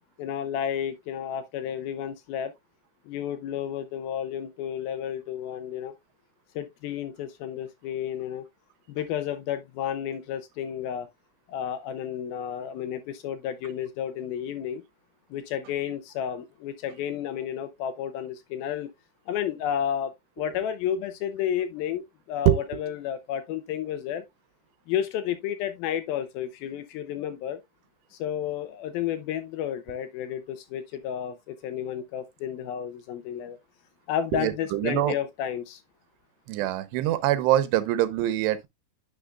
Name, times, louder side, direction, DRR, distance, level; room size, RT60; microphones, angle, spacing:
voice 1, 0.2-2.5 3.1-5.9 6.6-8.5 8.9-11.1 11.5-14.8 15.3-18.9 19.3-20.1 20.4-24.2 24.9-27.6 28.1-33.6 34.1-35.8, left 9 dB, 75° left, 2.4 m, -31 dB
voice 2, 34.3-35.1 36.5-38.7, right 13 dB, 85° right, 2.9 m, -24 dB
10.0 x 6.6 x 2.3 m
omnidirectional pair, 4.8 m